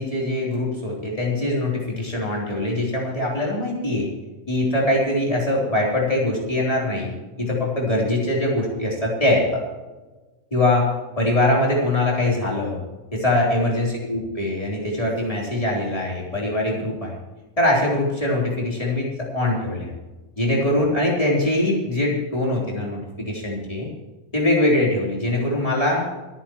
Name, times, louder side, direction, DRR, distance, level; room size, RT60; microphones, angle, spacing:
voice 1, 0.0-4.1 4.5-7.1 7.4-9.6 10.5-10.9 11.2-12.8 13.1-17.1 17.6-19.9 20.4-23.9 24.3-26.1, left 1 dB, 25° left, -4 dB, 4.0 m, -22 dB
28.0 x 9.9 x 3.1 m, 1.2 s
omnidirectional pair, 1.5 m